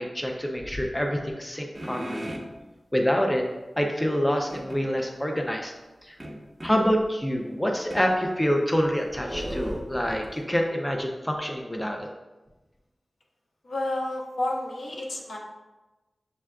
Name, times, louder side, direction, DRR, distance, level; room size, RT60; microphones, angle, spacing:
voice 1, 0.0-2.3 2.9-3.5 3.8-5.7 6.0-6.2 6.6-12.1, equal, 10° left, 2 dB, 0.4 m, -26 dB
sound 1, 1.7-2.5 4.5-4.8 6.2-6.8 7.9-8.1 8.7-10.4, equal, 20° right, 0.8 m, -35 dB
voice 2, 13.6-15.4, left 1 dB, 75° left, -2 dB, 0.8 m, -30 dB
7.1 x 2.4 x 2.2 m, 1.1 s
wide cardioid pair, 70°, 0 cm